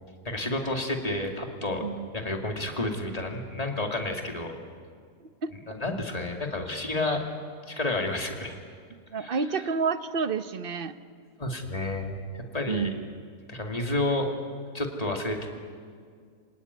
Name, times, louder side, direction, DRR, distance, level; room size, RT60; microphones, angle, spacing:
voice 1, 0.2-1.8 2.1-4.5 5.7-7.2 7.7-8.6 9.1-9.7 11.4-12.9 13.5-14.3 14.7-15.5, left 2 dB, 25° left, 2 dB, 2.5 m, -30 dB
voice 2, 9.1-10.9 12.7-13.0, right 5 dB, 40° right, 11 dB, 0.9 m, -29 dB
27.5 x 18.0 x 9.7 m, 2.1 s
omnidirectional pair, 1.7 m